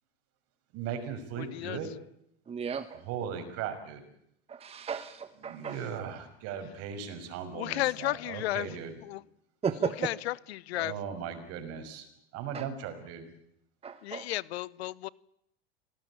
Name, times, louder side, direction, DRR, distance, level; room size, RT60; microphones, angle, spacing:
voice 1, 0.7-1.9 3.0-4.0 5.4-8.9 10.8-12.1 12.3-13.3, right 7 dB, 50° right, 5.8 m, -38 dB
voice 2, 1.4-1.8 7.5-8.8 9.0-9.2 9.8-10.9 14.0-15.1, left 16 dB, 80° left, 0.9 m, -33 dB
voice 3, 2.5-3.0 4.5-5.8 9.6-9.9 12.5-12.6 13.8-14.2, right 6 dB, 20° right, 1.3 m, -34 dB
26.5 x 18.5 x 8.7 m
supercardioid pair, 120°, 32 cm